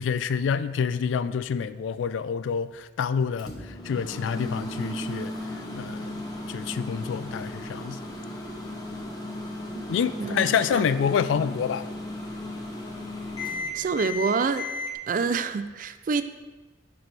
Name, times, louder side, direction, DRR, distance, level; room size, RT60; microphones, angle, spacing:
voice 1, 0.0-3.5 3.8-5.3 5.7-6.2 6.5-8.0 9.9-11.8, left 7 dB, 90° left, 0.3 m, -27 dB
Microwave oven, 3.4-14.9, left 1 dB, 20° left, 0.9 m, -35 dB
voice 2, 10.2-10.8 13.7-14.7 15.1-16.2, right 5 dB, 45° right, 0.3 m, -27 dB
10.5 x 4.2 x 3.3 m
head